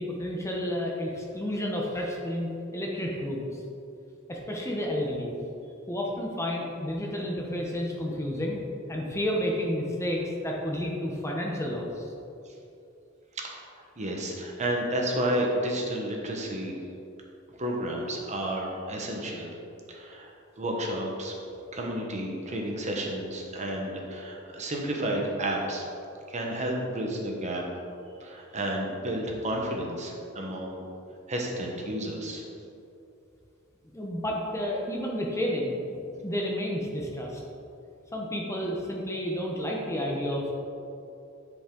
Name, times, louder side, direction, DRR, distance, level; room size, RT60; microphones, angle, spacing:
voice 1, 0.0-3.6 4.3-5.3 5.9-8.6 8.9-12.1 33.9-37.4 38.1-40.6, equal, 15° left, -1 dB, 0.9 m, -31 dB
voice 2, 14.0-16.7 17.6-19.5 19.9-21.3 21.7-25.8 26.3-27.7 28.2-30.8 31.3-32.4, right 1 dB, 35° right, 0 dB, 1.1 m, -31 dB
10.5 x 5.2 x 3.8 m, 2.7 s
head